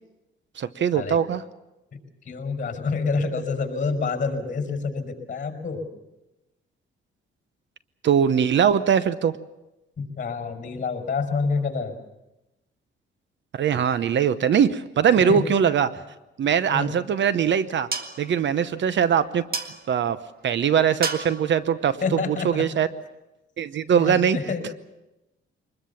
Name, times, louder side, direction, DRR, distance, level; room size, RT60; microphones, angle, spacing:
voice 1, 0.6-1.4 8.0-9.4 13.5-15.9 16.4-17.9 18.2-19.4 19.9-20.2 20.4-22.0 22.3-22.9 23.6-24.4, right 8 dB, 60° right, 14 dB, 0.9 m, -21 dB
voice 2, 2.3-5.9 10.0-12.0 15.3-15.4 16.7-16.9 22.0-22.7 23.9-24.6, left 4 dB, 40° left, 5 dB, 5.5 m, -27 dB
sound 1, 16.9-23.2, right 4 dB, 45° right, 1.9 m, -37 dB
24.0 x 21.0 x 7.1 m, 0.97 s
cardioid pair, 110°, 21 cm